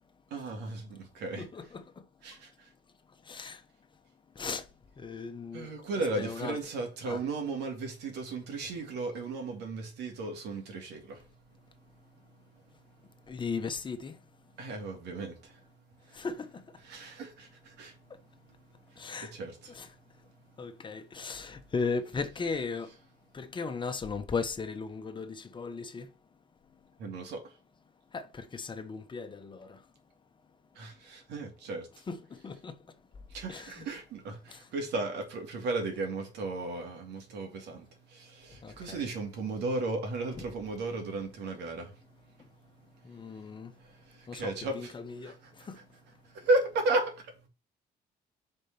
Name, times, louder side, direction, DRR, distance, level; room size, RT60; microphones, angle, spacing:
voice 1, 0.3-1.5 2.2-2.7 5.5-11.3 14.6-15.6 16.0-16.2 16.8-18.0 18.9-19.8 27.0-27.5 30.8-31.9 33.3-41.9 43.3-43.5 43.8-44.9 45.2-45.8 46.2-47.3, right 2 dB, 80° right, 2.6 m, -35 dB
voice 2, 1.4-2.0 3.2-3.6 4.3-4.7 5.0-5.7 6.1-6.6 7.0-7.2 13.3-14.2 16.1-16.6 19.0-19.3 19.7-19.9 20.6-23.0 23.3-26.1 28.1-29.8 32.1-32.8 33.5-33.7 34.5-34.7 38.6-39.0 43.0-43.7 44.3-45.8, left 4 dB, 30° left, 1.1 m, -37 dB
5.3 x 5.1 x 5.8 m
cardioid pair, 110°, 17 cm